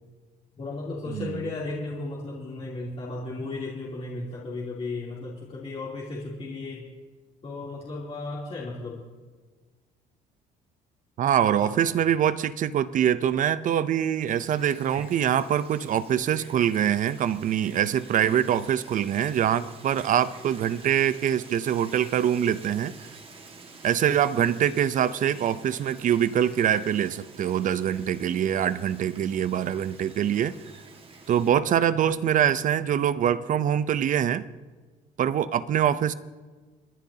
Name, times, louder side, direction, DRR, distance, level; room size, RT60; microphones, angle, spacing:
voice 1, 0.6-6.8 7.4-9.0 11.6-11.7, left 2 dB, 35° left, -6 dB, 3.0 m, -35 dB
voice 2, 11.2-22.9 23.8-30.6 31.3-34.5 35.2-36.1, right 9 dB, 50° right, 15 dB, 0.6 m, -24 dB
Wind, 14.3-31.5, right 4 dB, 35° right, 1.8 m, -49 dB
30.0 x 10.5 x 2.8 m, 1.3 s
cardioid pair, 110°, 17 cm